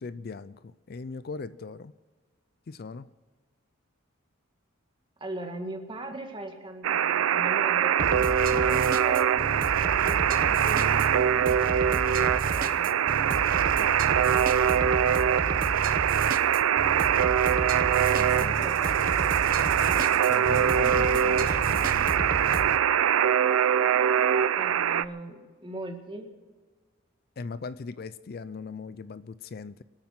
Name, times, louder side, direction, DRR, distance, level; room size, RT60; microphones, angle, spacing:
voice 1, 0.0-1.9 2.7-3.1 13.8-13.9 18.1-18.7 20.3-22.2 27.4-29.8, left 4 dB, 45° left, 16 dB, 0.4 m, -39 dB
voice 2, 5.2-9.4 9.7-12.9 18.2-20.2 24.6-26.3, right 1 dB, 25° right, 4 dB, 1.8 m, -41 dB
Alarm, 6.8-25.0, right 9 dB, 80° right, 0.4 m, -23 dB
sound 1, 8.0-22.8, right 3 dB, 45° right, 0.8 m, -33 dB
sound 2, 18.5-21.7, right 8 dB, 65° right, 2.5 m, -48 dB
25.0 x 8.9 x 6.0 m, 1.4 s
head